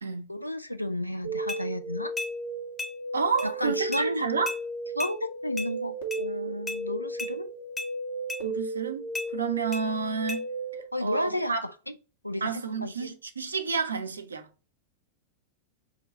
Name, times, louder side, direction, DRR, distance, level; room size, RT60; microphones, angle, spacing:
voice 1, 0.3-2.1 3.4-4.3 5.0-7.5 10.9-11.9 12.2-13.1, left 1 dB, 90° left, 0.4 m, -32 dB
sound 1, 1.2-10.8, right 2 dB, 65° left, 1.2 m, -35 dB
sound 2, 1.5-1.6 2.2-2.3 2.8-2.9 3.4-3.5 3.9-4.1 4.5-4.6 5.0-5.1 5.6-5.7 6.1-6.2 6.7-6.8 7.2-7.3 7.8-7.9 8.3-8.4 9.1-9.3 9.7-9.8 10.3-10.4, left 2 dB, 15° left, 0.8 m, -35 dB
voice 2, 3.1-4.5 8.4-10.5 11.0-11.6 12.4-14.5, right 5 dB, 75° right, 0.5 m, -30 dB
4.8 x 2.3 x 3.8 m
figure-of-eight pair, 90°, 0 cm